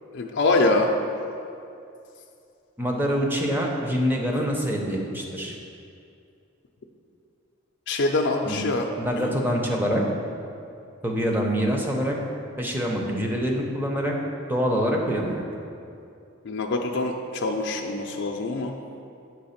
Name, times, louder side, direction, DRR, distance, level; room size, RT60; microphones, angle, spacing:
voice 1, 0.1-0.9 7.9-8.9 9.2-9.4 16.4-18.7, left 2 dB, 60° left, 1 dB, 0.4 m, -24 dB
voice 2, 2.8-5.6 8.4-8.6 9.0-10.0 11.0-12.2 12.6-14.1 14.5-15.4, equal, 10° right, -1 dB, 0.7 m, -25 dB
8.5 x 3.4 x 5.7 m, 2.5 s
head